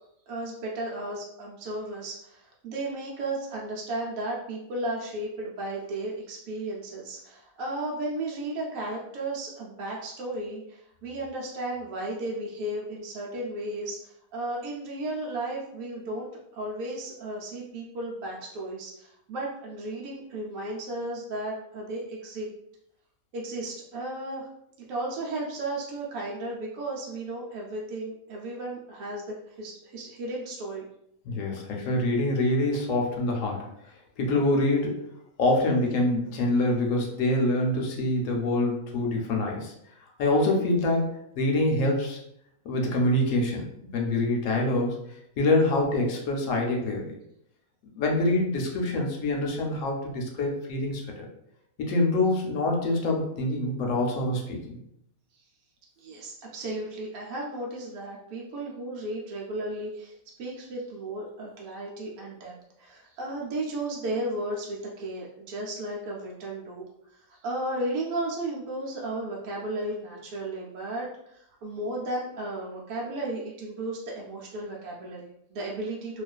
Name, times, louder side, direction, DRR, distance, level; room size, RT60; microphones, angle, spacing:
voice 1, 0.0-22.5 23.3-24.5 24.9-30.9 55.3-55.4 56.0-76.2, right 1 dB, 80° right, -3 dB, 1.0 m, -34 dB
voice 2, 31.3-33.7 34.2-35.0 35.4-39.7 40.2-42.2 42.6-43.7 43.9-45.0 45.4-47.1 48.0-51.3 51.8-54.8, left 2 dB, 70° left, 1 dB, 0.9 m, -25 dB
2.4 x 2.4 x 2.2 m, 0.75 s
omnidirectional pair, 1.5 m